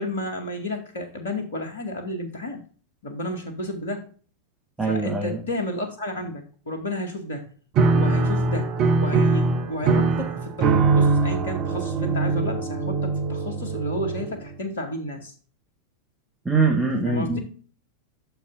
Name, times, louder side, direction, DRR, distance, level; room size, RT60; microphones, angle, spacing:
voice 1, 0.0-2.6 3.0-4.1 4.9-7.5 7.9-8.7 9.0-15.3 17.0-17.4, left 1 dB, 65° left, 5 dB, 2.0 m, -31 dB
voice 2, 4.8-5.4 16.4-17.4, right 4 dB, 10° right, 0 dB, 1.5 m, -23 dB
Piano, 7.8-14.5, right 4 dB, 40° right, 1.0 m, -22 dB
9.1 x 7.0 x 2.6 m, 0.42 s
figure-of-eight pair, 90°, 0 cm